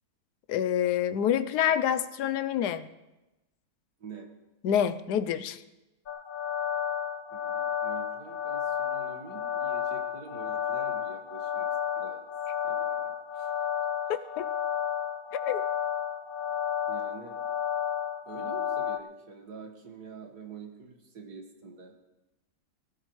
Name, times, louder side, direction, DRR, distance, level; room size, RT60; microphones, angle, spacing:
voice 1, 0.5-2.9 4.6-5.6 14.4-14.5 15.5-15.6, left 9 dB, 85° left, 12 dB, 1.2 m, -27 dB
sound 1, 6.1-19.0, left 9 dB, 50° left, 0.7 m, -32 dB
voice 2, 7.3-11.7 11.9-12.2 12.6-13.5 16.8-17.4 18.2-21.9, right 5 dB, 80° right, 2 dB, 2.2 m, -46 dB
19.0 x 16.0 x 3.2 m, 0.99 s
omnidirectional pair, 1.7 m